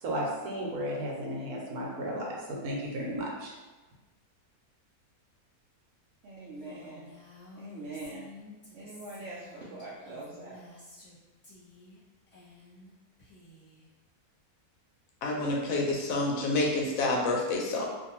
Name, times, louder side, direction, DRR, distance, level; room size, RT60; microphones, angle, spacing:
voice 1, 0.0-3.5, equal, 80° right, -2 dB, 1.2 m, -34 dB
voice 2, 6.2-7.1 7.5-8.3 8.7-10.6, right 2 dB, 65° right, -7 dB, 0.7 m, -43 dB
Female speech woman speaking, 6.5-11.2 11.4-12.0 12.3-12.9 13.2-13.8, left 2 dB, 20° left, 1.1 m, -52 dB
voice 3, 15.2-17.9, left 2 dB, 70° left, -2 dB, 1.0 m, -28 dB
2.6 x 2.5 x 2.9 m, 1.2 s
omnidirectional pair, 1.6 m